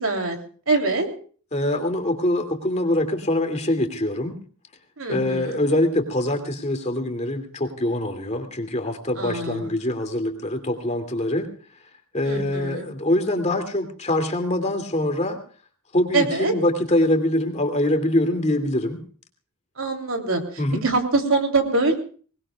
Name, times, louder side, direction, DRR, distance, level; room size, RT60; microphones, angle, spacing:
voice 1, 0.0-0.4 0.7-1.1 5.0-5.6 9.2-9.7 12.2-12.8 16.1-16.5 19.8-22.0, right 3 dB, 65° right, 3 dB, 3.2 m, -24 dB
voice 2, 1.5-4.4 5.1-11.5 12.1-15.4 15.9-19.0 20.6-20.9, left 1 dB, 30° left, 5 dB, 2.6 m, -24 dB
24.0 x 20.5 x 2.4 m, 0.43 s
head